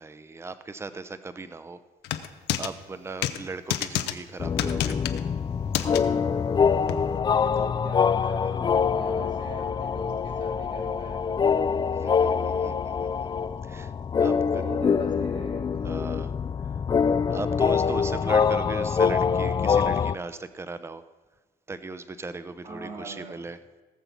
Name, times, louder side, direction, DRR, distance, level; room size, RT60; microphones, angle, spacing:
voice 1, 0.0-1.8 2.6-5.0 7.4-7.7 12.0-13.3 13.7-13.9 14.2-14.6 15.8-16.3 17.3-21.0 21.7-23.6, right 3 dB, 15° right, 12 dB, 0.7 m, -38 dB
sound 1, 2.0-2.7 3.2-3.4 3.7-4.1 4.6-5.2 5.7-6.0 6.9-7.0, left 12 dB, 85° left, 0.8 m, -28 dB
sound 2, 4.4-20.1, left 6 dB, 25° left, 0.4 m, -25 dB
voice 2, 7.8-11.3 14.2-15.8 22.6-23.4, right 3 dB, 45° right, 2 dB, 2.3 m, -42 dB
18.0 x 6.8 x 5.9 m, 1.2 s
cardioid pair, 110°, 17 cm